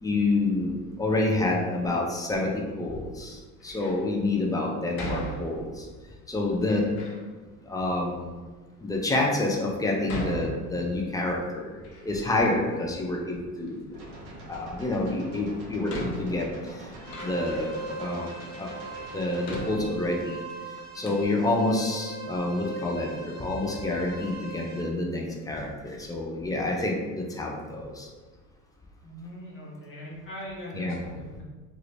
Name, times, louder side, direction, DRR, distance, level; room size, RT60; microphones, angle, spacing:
voice 1, 0.0-5.9 6.3-6.9 7.7-8.4 8.8-13.8 14.5-16.9 17.2-18.3 18.6-18.7 19.1-20.4 20.9-28.1 30.7-31.0, left 2 dB, 10° left, -1 dB, 0.4 m, -28 dB
Door, 3.6-4.1 5.0-5.9 6.6-7.2 8.0-8.1 8.8-8.9 10.1-11.2 11.6-12.6 12.9-13.8 15.1-15.2 15.9-17.8 18.5-18.6 19.4-20.5 20.8-20.9 21.0-21.3, right 1 dB, 75° left, 0.8 m, -38 dB
sound 1, 13.9-19.6, right 1 dB, 60° right, 1.0 m, -44 dB
sound 2, 16.9-24.8, right 3 dB, 35° right, 1.3 m, -40 dB
voice 2, 29.0-31.4, equal, 25° left, -5 dB, 0.9 m, -41 dB
3.2 x 2.4 x 3.2 m, 1.3 s
hypercardioid pair, 75°, 46 cm